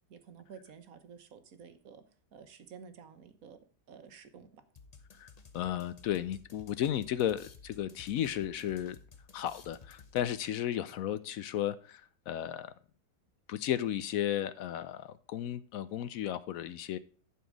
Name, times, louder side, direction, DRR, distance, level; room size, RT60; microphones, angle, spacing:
voice 1, 0.1-2.0 2.3-3.6 3.9-4.6, right 6 dB, 60° right, 1.4 m, -52 dB
sound 1, 4.8-10.6, left 5 dB, 35° left, 0.7 m, -55 dB
voice 2, 5.1-9.0 9.3-12.7 13.5-17.0, left 11 dB, 70° left, 0.9 m, -34 dB
11.0 x 4.5 x 6.1 m
omnidirectional pair, 1.8 m